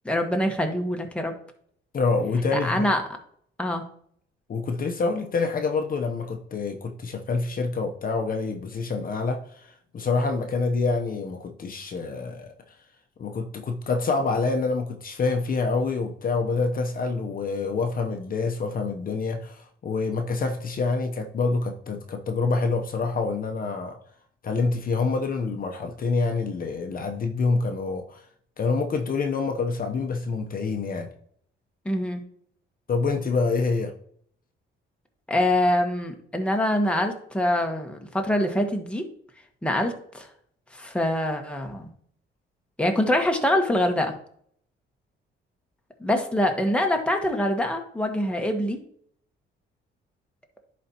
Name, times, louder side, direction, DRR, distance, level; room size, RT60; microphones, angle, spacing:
voice 1, 0.0-1.3 2.5-3.0 3.6-3.8 31.8-32.2 35.3-39.0 39.6-40.3 40.7-41.9 42.8-44.1 46.0-48.8, left 1 dB, 5° left, 3 dB, 1.2 m, -24 dB
voice 2, 1.9-2.9 4.5-12.5 13.2-24.0 24.4-28.2 28.6-31.1 32.9-33.9, left 4 dB, 45° left, 4 dB, 0.8 m, -26 dB
10.5 x 4.2 x 2.9 m, 0.64 s
cardioid pair, 90°, 20 cm